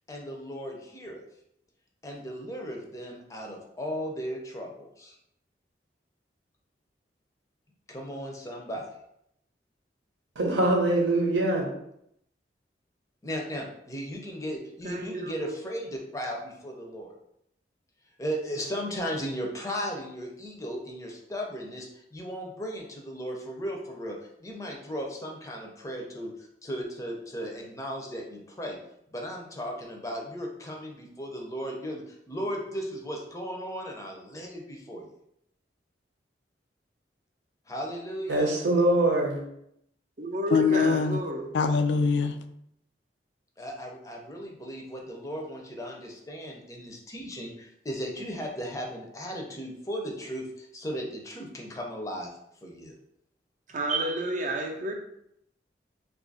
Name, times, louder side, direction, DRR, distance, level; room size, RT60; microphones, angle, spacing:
voice 1, 0.1-1.2 2.0-5.1 7.9-8.9 13.2-17.1 18.2-26.3 26.6-28.8 29.1-35.1 37.7-38.5 43.6-52.3 52.6-53.0, equal, 20° left, 0.5 m, -36 dB
voice 2, 10.4-11.7 38.3-39.4, right 1 dB, 80° right, 0.7 m, -23 dB
voice 3, 14.8-15.5 40.2-41.5 53.7-54.9, right 1 dB, 45° right, 0.5 m, -31 dB
voice 4, 40.5-41.2 41.5-42.4, left 5 dB, 75° left, 0.3 m, -23 dB
2.7 x 2.4 x 3.9 m
head